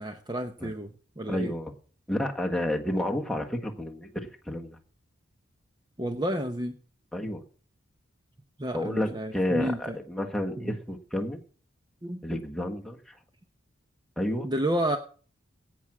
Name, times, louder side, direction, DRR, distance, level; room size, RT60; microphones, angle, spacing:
voice 1, 0.0-1.5 6.0-6.8 8.6-10.0 10.6-10.8 12.0-12.2 14.4-15.0, right 1 dB, 20° right, 6 dB, 0.8 m, -31 dB
voice 2, 1.3-1.7 2.1-4.8 7.1-7.4 8.7-11.4 12.2-13.0 14.2-14.5, left 1 dB, 5° left, 1 dB, 1.5 m, -30 dB
17.0 x 6.2 x 7.4 m, 0.42 s
head